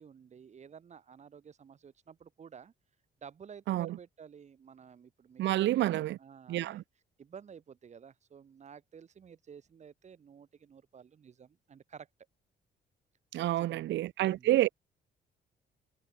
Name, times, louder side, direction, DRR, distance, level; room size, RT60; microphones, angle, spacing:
voice 1, 0.0-2.7 3.2-6.8 7.2-12.1 13.6-14.0 14.2-14.5, right 7 dB, 40° right, 7.5 m, -52 dB
voice 2, 5.4-6.2 6.5-6.8 13.3-14.8, right 14 dB, 90° right, 1.2 m, -29 dB
cardioid pair, 160°, 18 cm